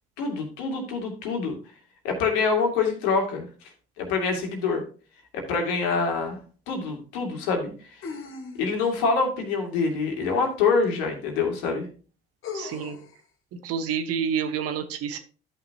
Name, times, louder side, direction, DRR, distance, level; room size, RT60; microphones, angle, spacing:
voice 1, 0.2-1.5 2.0-3.5 4.0-4.8 5.3-6.4 6.7-8.0 8.6-11.9, left 4 dB, 70° left, 3 dB, 2.4 m, -25 dB
sound 1, 5.9-6.0 8.0-9.0 10.8-10.9 12.4-13.2, left 5 dB, 45° left, 2.2 m, -38 dB
voice 2, 12.5-13.0 13.6-15.2, right 7 dB, 55° right, 7 dB, 1.3 m, -28 dB
13.5 x 5.8 x 2.9 m, 0.38 s
hypercardioid pair, 60°, 29 cm